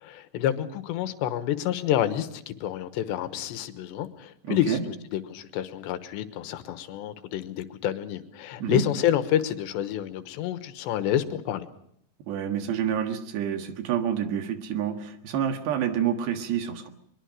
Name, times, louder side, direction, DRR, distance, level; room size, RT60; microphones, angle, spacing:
voice 1, 0.0-11.7, left 11 dB, 80° left, 11 dB, 3.3 m, -28 dB
voice 2, 4.4-4.8 8.6-8.8 12.3-16.9, right 9 dB, 75° right, 7 dB, 3.7 m, -28 dB
22.5 x 22.0 x 6.4 m, 0.69 s
omnidirectional pair, 5.1 m